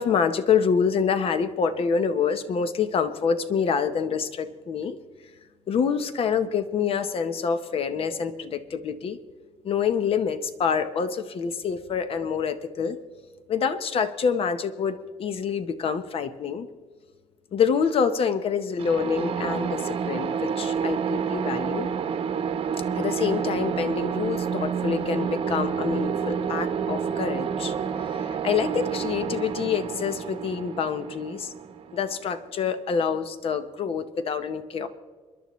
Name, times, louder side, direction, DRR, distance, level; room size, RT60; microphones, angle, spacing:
voice 1, 0.0-5.0 5.7-9.2 9.6-13.0 13.5-16.7 17.5-21.9 23.0-27.7 28.0-31.5 31.9-34.9, left 6 dB, 50° left, 11 dB, 0.9 m, -26 dB
sound 1, 18.8-32.5, right 7 dB, 45° right, 0.9 m, -29 dB
26.5 x 11.0 x 3.1 m, 1.5 s
cardioid pair, 140°, 13 cm